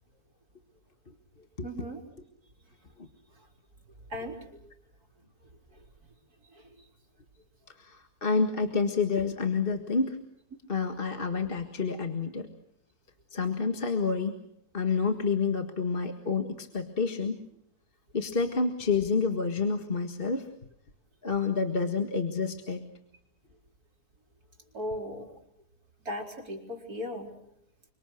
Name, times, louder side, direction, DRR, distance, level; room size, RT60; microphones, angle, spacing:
voice 1, 1.6-2.0 4.1-4.4 24.7-25.2 26.0-27.3, left 1 dB, 60° right, 2 dB, 5.0 m, -36 dB
voice 2, 7.8-10.2 10.7-12.5 13.3-14.4 14.7-17.4 18.1-20.5 21.2-22.9, left 4 dB, 35° left, 6 dB, 1.9 m, -28 dB
29.0 x 25.0 x 6.5 m, 0.73 s
omnidirectional pair, 1.8 m